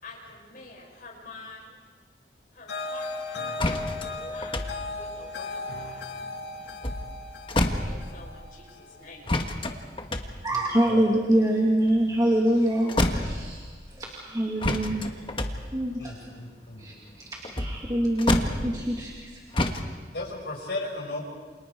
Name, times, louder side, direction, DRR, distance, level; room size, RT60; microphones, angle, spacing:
voice 1, 0.0-1.8 2.5-4.7 4.9-6.0 7.7-10.5, left 3 dB, 50° left, -2 dB, 6.6 m, -47 dB
sound 1, 2.7-9.8, left 3 dB, 85° left, 1.9 m, -37 dB
sound 2, 3.6-6.3 6.6-8.4 9.3-12.6 12.9-13.9 14.6-19.2 19.5-19.9, left 1 dB, 30° left, 1.4 m, -29 dB
voice 2, 10.4-13.6 13.9-15.1 15.7-16.2 16.8-19.4, right 1 dB, 20° right, -3 dB, 2.3 m, -25 dB
voice 3, 16.0-16.9 20.1-21.2, left 2 dB, 65° left, 0 dB, 5.3 m, -35 dB
29.0 x 27.5 x 4.7 m, 1.4 s
head